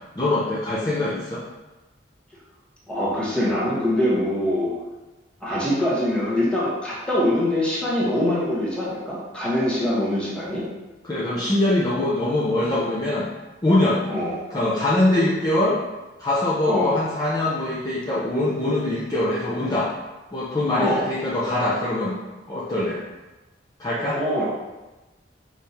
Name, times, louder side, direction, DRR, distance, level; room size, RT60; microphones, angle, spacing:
voice 1, 0.2-1.4 11.0-13.3 13.6-14.0 14.5-15.8 16.2-19.9 20.3-22.2 22.5-23.0 23.8-24.2, left 1 dB, 20° left, -8 dB, 0.6 m, -23 dB
voice 2, 2.9-4.7 5.4-10.6 14.1-14.3 16.7-17.0 20.7-21.1 24.1-24.4, left 1 dB, 5° left, -7 dB, 1.1 m, -23 dB
5.3 x 3.2 x 2.8 m, 1.1 s
head